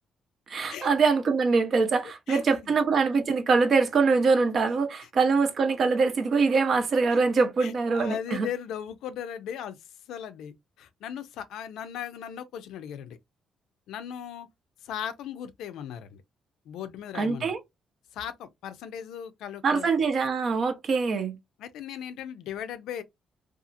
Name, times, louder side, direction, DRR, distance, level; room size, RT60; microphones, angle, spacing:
voice 1, 0.5-8.5 17.1-17.6 19.6-21.4, right 4 dB, 55° right, 0.6 m, -24 dB
voice 2, 2.3-2.7 7.1-7.2 7.6-9.8 10.1-13.2 13.9-14.5 14.8-16.2 16.7-17.5 18.1-19.9 21.6-23.0, left 9 dB, 85° left, 0.4 m, -37 dB
2.7 x 2.4 x 2.4 m
cardioid pair, 90°, 0 cm